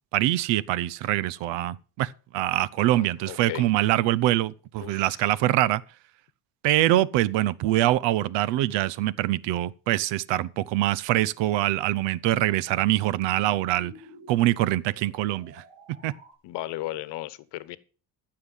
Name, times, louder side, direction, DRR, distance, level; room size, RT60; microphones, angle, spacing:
voice 1, 0.1-5.8 6.6-13.9 14.3-15.6 16.0-16.2, right 15 dB, 90° right, 0.7 m, -24 dB
voice 2, 2.8-3.7 4.8-5.2 16.4-17.8, left 16 dB, 70° left, 1.0 m, -36 dB
sound 1, 12.5-16.3, right 1 dB, 45° right, 3.7 m, -52 dB
15.0 x 6.8 x 5.5 m
cardioid pair, 120°, 42 cm